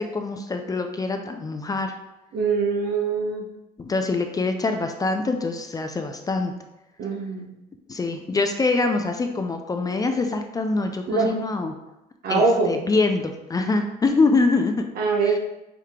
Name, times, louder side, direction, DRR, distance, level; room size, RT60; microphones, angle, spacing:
voice 1, 0.0-2.0 3.8-6.5 7.9-11.7 12.3-14.9 15.2-15.4, left 3 dB, 20° left, 6 dB, 0.4 m, -24 dB
voice 2, 2.3-3.5 7.0-7.5 11.1-11.3 12.2-12.8 15.0-15.4, right 4 dB, 65° right, 2 dB, 0.9 m, -23 dB
4.9 x 2.8 x 3.6 m, 0.92 s
cardioid pair, 110°, 17 cm